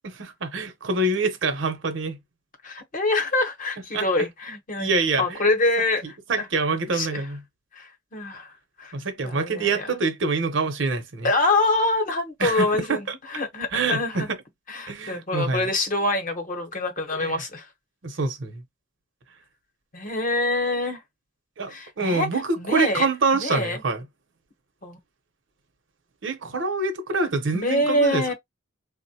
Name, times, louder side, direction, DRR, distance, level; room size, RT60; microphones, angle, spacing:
voice 1, 0.0-2.2 3.9-4.1 4.8-5.5 6.3-7.4 8.9-11.3 12.4-13.1 13.7-14.4 14.9-15.7 17.2-17.4 18.0-18.6 21.6-24.1 26.2-28.3, right 3 dB, 65° right, 0.7 m, -26 dB
voice 2, 2.6-4.9 5.2-6.5 6.9-7.2 7.7-8.5 8.8-8.9 9.2-9.9 11.2-14.3 14.7-17.7 19.9-21.0 21.7-22.3 22.6-23.1 23.3-23.8 24.8-25.0 27.5-28.3, left 2 dB, 40° left, 0.8 m, -25 dB
3.6 x 2.1 x 2.7 m
head